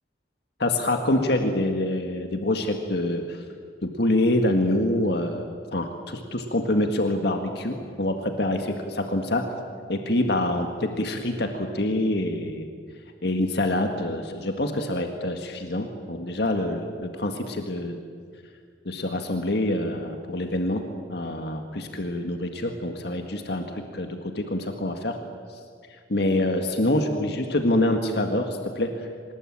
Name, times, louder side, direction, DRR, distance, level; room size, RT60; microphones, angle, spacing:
voice 1, 0.6-3.4 3.8-8.7 9.1-9.4 9.9-12.7 13.2-18.0 18.9-20.8 21.1-25.2 26.1-29.1, left 1 dB, 65° left, 5 dB, 1.8 m, -26 dB
25.0 x 20.5 x 8.8 m, 2.1 s
head